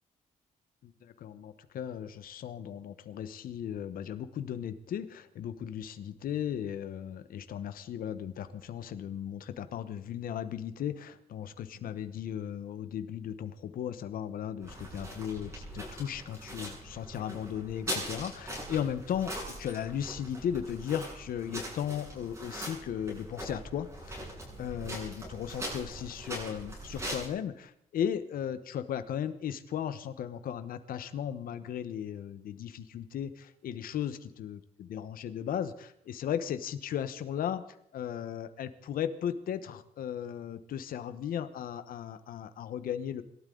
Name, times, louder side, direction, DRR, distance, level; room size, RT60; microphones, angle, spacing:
voice 1, 0.8-24.3 24.6-43.2, left 9 dB, 80° left, 11 dB, 1.1 m, -36 dB
sound 1, 14.6-27.3, equal, 20° right, 7.9 m, -41 dB
27.0 x 13.0 x 3.9 m, 0.73 s
cardioid pair, 135°, 15 cm